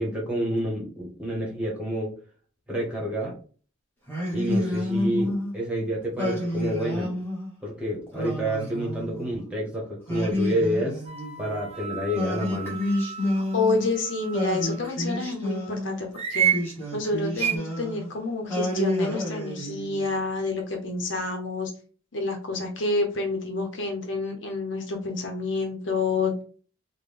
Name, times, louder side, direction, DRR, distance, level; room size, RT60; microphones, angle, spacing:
voice 1, 0.0-2.1 2.7-3.3 4.3-7.1 7.6-11.0 11.4-12.8, equal, 5° right, -4 dB, 1.2 m, -29 dB
Singing, 4.1-5.5 6.2-7.5 8.1-9.4 10.1-11.6 12.1-13.9 14.3-16.0 16.4-18.1 18.5-20.1, left 1 dB, 10° left, 1.2 m, -29 dB
sound 1, 11.1-14.9 16.2-16.7 17.4-17.6, right 9 dB, 35° right, 0.5 m, -30 dB
voice 2, 13.4-16.5 16.9-21.7 22.1-26.3, left 3 dB, 75° left, 2 dB, 0.8 m, -28 dB
3.7 x 2.2 x 3.4 m, 0.41 s
head